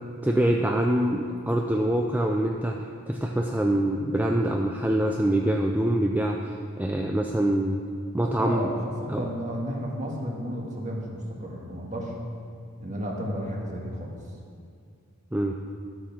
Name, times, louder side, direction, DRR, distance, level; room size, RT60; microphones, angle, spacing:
voice 1, 0.2-6.5 6.8-7.8 8.1-8.7 9.1-9.2 15.3-15.5, right 1 dB, 10° right, 1 dB, 0.4 m, -25 dB
voice 2, 8.4-12.1 12.8-14.2, equal, 35° right, -1 dB, 1.8 m, -32 dB
13.0 x 8.0 x 6.0 m, 2.3 s
head